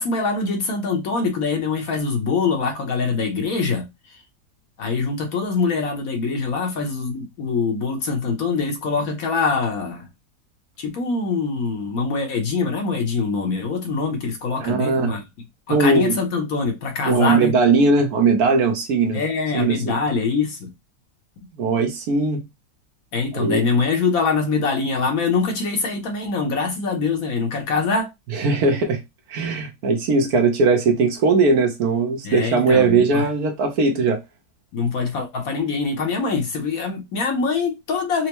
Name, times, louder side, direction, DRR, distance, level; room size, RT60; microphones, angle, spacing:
voice 1, 0.0-3.9 4.8-10.1 10.8-15.2 15.7-17.5 19.1-20.7 23.1-28.1 32.2-33.3 34.7-38.3, left 4 dB, 65° left, 1.2 m, -24 dB
voice 2, 14.6-15.1 15.7-16.2 17.0-19.2 19.5-20.0 21.6-22.4 23.3-23.6 28.3-29.0 29.3-34.2, right 4 dB, 70° right, 1.3 m, -19 dB
4.4 x 2.0 x 2.9 m
omnidirectional pair, 1.8 m